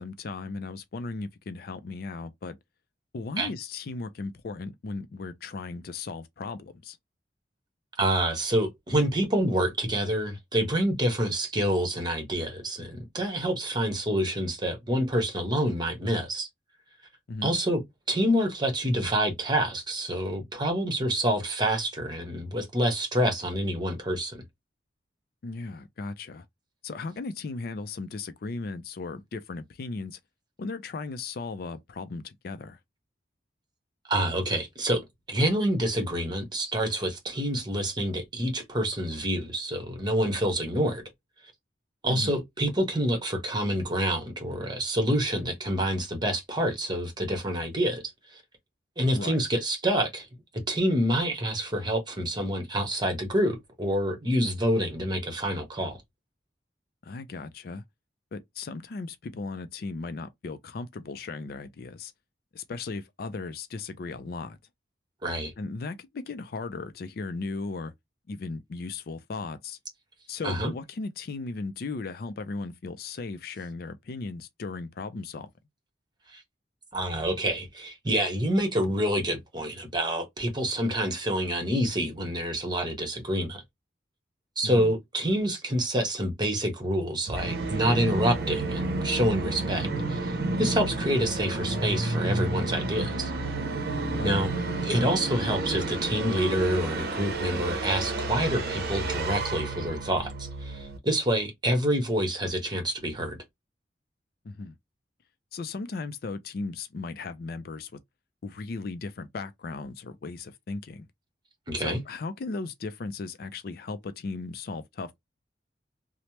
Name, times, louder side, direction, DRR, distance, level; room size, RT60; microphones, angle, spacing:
voice 1, 0.0-2.6 3.1-7.0 17.3-17.6 25.4-26.4 26.8-30.2 30.6-32.8 42.1-42.3 49.1-49.4 57.0-57.8 58.3-62.1 62.5-64.6 65.6-67.9 68.3-69.8 70.3-75.5 84.6-84.9 94.2-94.5 104.4-104.8 105.5-107.9 108.4-111.1 111.8-115.2, left 3 dB, 55° left, 0.4 m, -36 dB
voice 2, 8.0-16.5 17.4-17.8 18.1-24.4 34.1-35.0 35.3-41.0 42.0-48.0 48.3-48.4 49.0-50.3 50.7-56.0 65.2-65.5 70.4-70.7 76.3-76.4 76.9-83.6 84.6-93.3 94.2-103.4 111.7-112.0, equal, 25° right, 1.0 m, -27 dB
Musical instrument, 87.3-101.0, right 2 dB, 60° right, 0.7 m, -30 dB
3.1 x 2.0 x 2.8 m
head